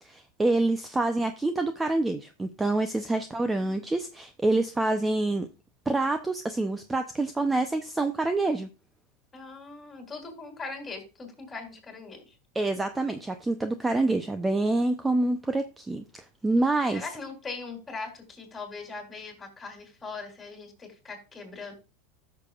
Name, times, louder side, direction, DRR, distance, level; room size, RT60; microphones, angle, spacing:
voice 1, 0.0-5.5 5.9-8.7 12.5-17.1, right 2 dB, 10° right, 0.7 m, -27 dB
voice 2, 9.3-12.3 16.9-21.7, left 4 dB, 15° left, 3.4 m, -40 dB
13.5 x 6.7 x 2.4 m
supercardioid pair, 125°, 0 cm